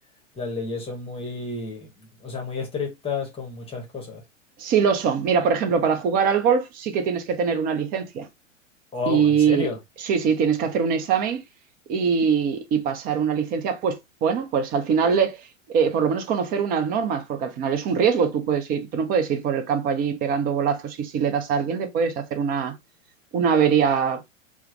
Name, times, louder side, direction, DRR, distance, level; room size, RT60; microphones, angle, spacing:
voice 1, 0.4-4.2 8.9-9.8, left 4 dB, 15° left, 0.9 m, -31 dB
voice 2, 4.6-8.3 9.1-9.7 10.0-11.4 11.9-15.4 15.7-22.7 23.3-24.2, right 6 dB, 25° right, 0.5 m, -23 dB
3.4 x 2.0 x 3.1 m
figure-of-eight pair, 95°, 39 cm